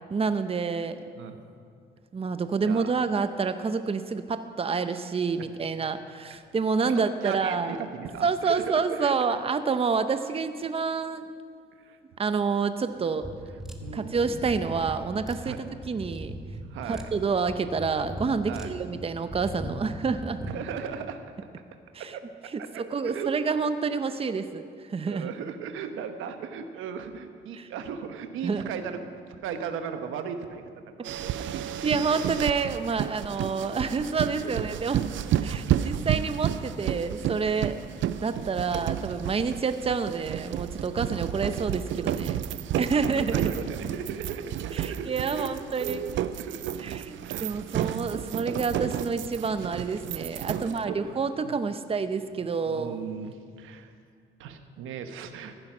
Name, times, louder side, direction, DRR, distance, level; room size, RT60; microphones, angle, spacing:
voice 1, 0.1-1.0 2.1-7.8 8.2-11.3 12.2-13.3 13.9-15.6 15.9-16.3 16.9-20.4 21.9-22.1 22.8-25.3 27.6-27.7 28.4-28.7 31.8-35.0 35.4-37.8 38.2-42.4 42.8-43.5 44.7-46.0 46.8-53.0, right 5 dB, 30° right, 10 dB, 0.7 m, -28 dB
voice 2, 6.8-9.3 11.8-12.0 13.8-14.2 15.4-15.6 16.7-17.0 18.5-18.7 20.4-21.2 22.0-22.2 22.6-23.3 25.1-29.0 29.4-30.6 31.0-31.7 33.1-33.2 34.3-34.7 40.9-41.1 42.3-45.5 45.8-46.1 46.4-46.8 47.2-48.0 50.5-51.2 51.4-51.5 52.4-53.9 54.4-55.5, right 7 dB, 90° right, 7 dB, 1.1 m, -37 dB
sound 1, 13.2-20.6, equal, ahead, 1.7 m, -39 dB
sound 2, 31.0-50.9, right 11 dB, 75° right, 0.5 m, -31 dB
15.5 x 10.5 x 6.0 m, 2.2 s
cardioid pair, 90°, 20 cm